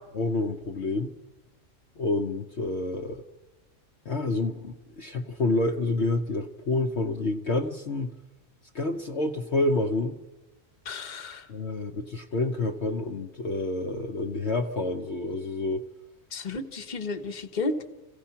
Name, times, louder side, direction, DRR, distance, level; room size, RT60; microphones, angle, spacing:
voice 1, 0.1-1.1 2.0-3.2 4.0-8.1 8.7-10.2 11.5-15.8, left 2 dB, 55° left, 2 dB, 1.2 m, -28 dB
voice 2, 10.8-11.5 16.3-17.8, left 3 dB, 35° left, 5 dB, 1.2 m, -32 dB
27.5 x 16.5 x 5.8 m, 1.2 s
omnidirectional pair, 1.4 m